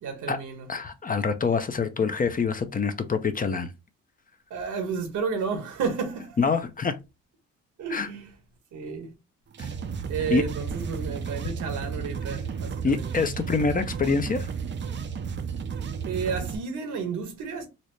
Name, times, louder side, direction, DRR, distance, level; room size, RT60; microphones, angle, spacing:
voice 1, 0.0-0.7 4.5-6.5 7.8-8.3 8.7-9.1 10.1-13.3 16.0-17.7, right 5 dB, 80° right, 1.4 m, -32 dB
voice 2, 0.7-3.7 6.4-7.0 7.9-8.1 9.6-9.7 10.3-10.4 12.8-14.5, left 5 dB, 30° left, 0.5 m, -25 dB
sound 1, 9.5-16.6, right 6 dB, 40° right, 0.5 m, -33 dB
4.0 x 2.1 x 3.1 m
cardioid pair, 90°, 30 cm